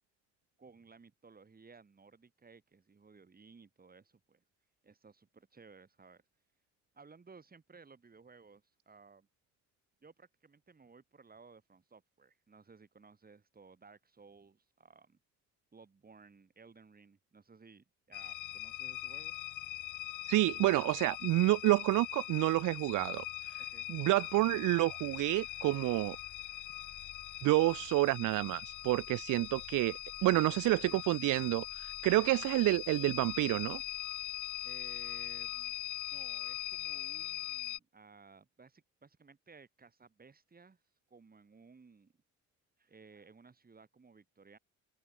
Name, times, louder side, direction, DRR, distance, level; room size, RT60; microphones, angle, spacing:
voice 1, 0.6-4.4 4.8-6.2 6.9-9.3 10.0-15.2 15.7-19.4 23.6-23.9 30.2-30.3 30.7-31.0 34.6-35.8 36.1-40.8 41.1-42.1 42.8-44.6, right 4 dB, 30° right, 5.4 m, -58 dB
sound 1, 18.1-37.8, left 15 dB, 80° left, 1.3 m, -41 dB
voice 2, 20.3-23.2 23.9-26.2 27.4-31.6 32.0-33.8, right 18 dB, 85° right, 0.8 m, -29 dB
open air
cardioid pair, 90°, 30 cm